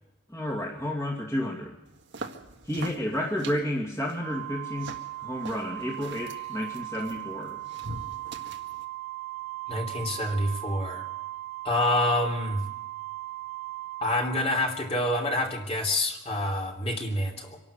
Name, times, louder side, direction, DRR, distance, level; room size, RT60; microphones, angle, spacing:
voice 1, 0.3-1.7 2.7-4.9 5.2-7.6, left 1 dB, 15° left, -2 dB, 2.5 m, -31 dB
sound 1, 1.9-8.8, right 2 dB, 55° right, 1.7 m, -44 dB
Organ, 4.2-14.9, right 18 dB, 35° right, 1.1 m, -38 dB
voice 2, 9.7-11.0 11.6-12.6 14.0-17.6, left 1 dB, 30° left, 1 dB, 3.0 m, -27 dB
25.5 x 12.0 x 8.4 m, 0.94 s
head